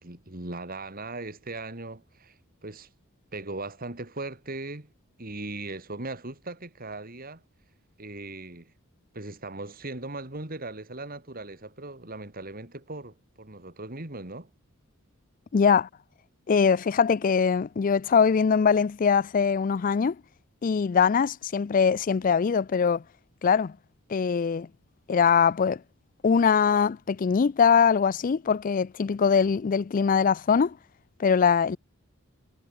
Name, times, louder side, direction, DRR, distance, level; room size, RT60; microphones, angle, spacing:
voice 1, 0.0-2.9 3.3-4.9 5.2-7.4 8.0-8.7 9.1-14.5, right 2 dB, 45° right, 3.1 m, -38 dB
voice 2, 15.5-15.9 16.5-20.2 20.6-23.0 23.4-23.7 24.1-24.7 25.1-25.8 26.2-30.8 31.2-31.8, left 6 dB, 40° left, 0.4 m, -22 dB
head